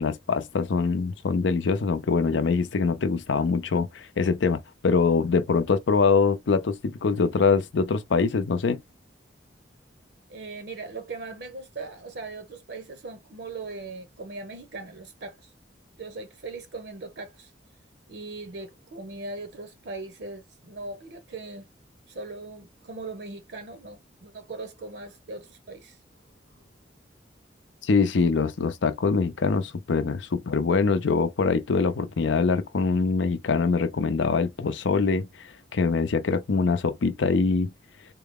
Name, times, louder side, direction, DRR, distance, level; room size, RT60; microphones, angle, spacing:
voice 1, 0.0-8.8 27.8-35.3 35.7-37.7, left 4 dB, 90° left, 0.5 m, -24 dB
voice 2, 10.3-15.5 16.0-17.5 18.1-21.7 22.1-26.0, right 3 dB, 65° right, 0.7 m, -39 dB
3.8 x 2.0 x 3.6 m
head